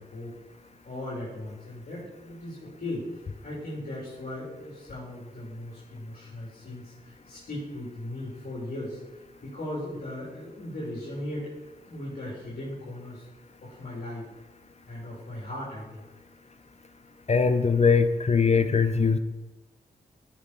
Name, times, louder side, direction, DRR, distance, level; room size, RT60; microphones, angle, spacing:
voice 1, 0.0-9.0 9.4-11.5 11.9-13.2 13.6-14.3 14.9-16.0, left 1 dB, 60° left, -7 dB, 3.2 m, -38 dB
voice 2, 17.3-19.2, left 5 dB, 40° left, 11 dB, 0.6 m, -21 dB
9.4 x 6.2 x 4.3 m, 1.1 s
cardioid pair, 45°, 17 cm